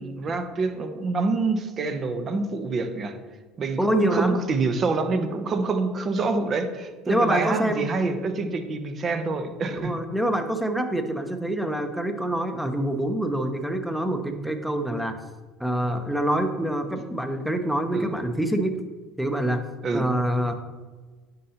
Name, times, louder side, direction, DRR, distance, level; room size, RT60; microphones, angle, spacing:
voice 1, 0.0-3.1 3.6-9.9 17.9-18.1 19.8-20.1, right 3 dB, 40° right, 8 dB, 0.9 m, -26 dB
voice 2, 3.8-4.4 7.1-7.9 9.7-15.2 15.6-18.8 19.2-19.6 19.9-20.6, right 1 dB, ahead, 6 dB, 0.8 m, -26 dB
9.3 x 5.3 x 2.9 m, 1.3 s
supercardioid pair, 95°, 0 cm